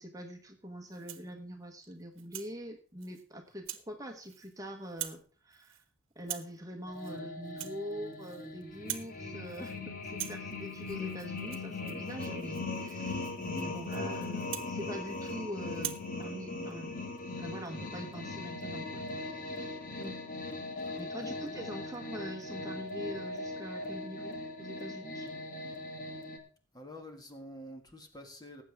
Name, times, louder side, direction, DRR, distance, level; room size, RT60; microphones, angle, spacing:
voice 1, 0.0-5.8 6.1-17.0 17.3-20.2 21.0-25.3, equal, 20° right, 4 dB, 1.3 m, -44 dB
Rattle (instrument), 0.9-1.3 1.8-2.5 3.0-3.2 3.6-3.9 4.2-4.6 4.9-5.3 5.5-5.8 6.2-6.6 6.9-7.2 7.5-8.5 8.7-9.2 9.5-9.8 10.0-15.4 15.7-16.1, right 13 dB, 85° right, 1.2 m, -44 dB
sound 1, 6.9-26.4, left 2 dB, 45° left, 1.9 m, -39 dB
voice 2, 21.2-21.6 26.7-28.6, equal, 20° left, 4 dB, 1.8 m, -48 dB
18.5 x 8.3 x 3.5 m, 0.40 s
head